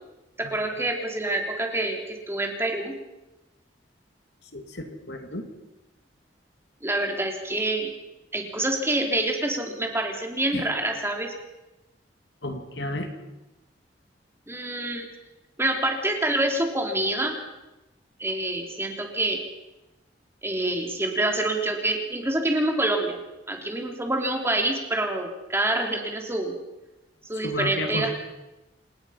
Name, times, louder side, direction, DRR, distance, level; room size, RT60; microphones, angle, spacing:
voice 1, 0.4-2.9 6.8-7.9 8.3-11.3 14.5-15.1 15.6-17.3 18.2-19.4 20.4-23.2 23.5-26.5 27.3-28.1, right 1 dB, 15° right, 2 dB, 3.2 m, -26 dB
voice 2, 4.5-5.4 10.5-10.6 12.4-13.1 27.4-28.1, left 1 dB, 70° left, 5 dB, 2.8 m, -32 dB
27.5 x 19.0 x 5.8 m, 0.99 s
head